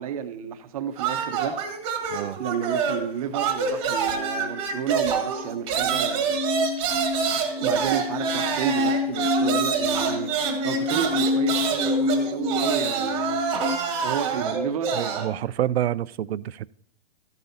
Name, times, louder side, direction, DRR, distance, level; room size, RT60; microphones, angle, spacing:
voice 1, 0.0-1.5 2.4-6.5 7.6-10.3 10.6-13.4 14.0-15.0, right 8 dB, 35° right, 0.9 m, -31 dB
sound 1, 1.0-3.1 3.3-15.3, right 6 dB, 15° right, 1.4 m, -26 dB
sound 2, 4.1-13.8, left 4 dB, 25° left, 0.4 m, -28 dB
voice 2, 15.0-16.7, right 12 dB, 80° right, 0.5 m, -28 dB
14.0 x 8.0 x 2.8 m
hypercardioid pair, 165°, 31 cm